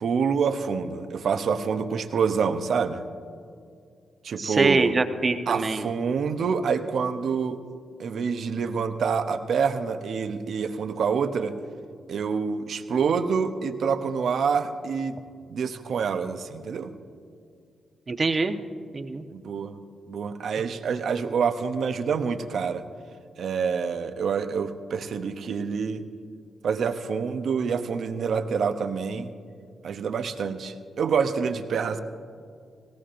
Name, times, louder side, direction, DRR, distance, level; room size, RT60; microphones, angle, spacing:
voice 1, 0.0-3.0 4.2-4.9 5.5-7.6 8.0-11.6 12.1-15.2 15.5-17.0 19.3-19.8 20.1-22.8 23.4-26.1 26.6-29.3 29.8-32.0, right 6 dB, 70° right, 8 dB, 0.8 m, -27 dB
voice 2, 4.4-5.9 18.1-18.6 18.9-19.2, right 3 dB, 40° right, 7 dB, 0.9 m, -24 dB
18.5 x 17.0 x 2.6 m, 2.3 s
supercardioid pair, 55°, 0 cm